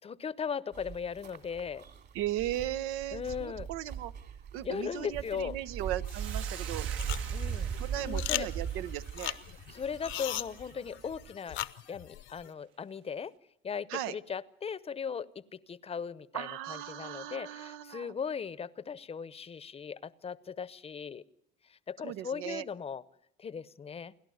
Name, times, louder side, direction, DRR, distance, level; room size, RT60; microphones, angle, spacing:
voice 1, 0.0-1.9 3.1-3.7 4.6-5.6 7.3-7.7 8.0-8.5 9.7-11.6 11.9-13.3 13.6-21.2 21.7-23.0 23.4-24.1, left 6 dB, 30° left, 18 dB, 0.7 m, -38 dB
sound 1, 0.7-11.3, right 8 dB, 50° right, 3.0 m, -39 dB
voice 2, 2.1-4.1 4.5-6.9 7.8-9.4 13.9-14.2 16.3-18.1 22.0-22.7, right 12 dB, 90° right, 14 dB, 0.8 m, -37 dB
Hiss, 6.0-10.6, right 9 dB, 70° right, 1.4 m, -47 dB
sound 2, 6.1-12.5, left 13 dB, 65° left, 0.8 m, -40 dB
29.5 x 11.5 x 9.4 m, 0.78 s
cardioid pair, 110°, 21 cm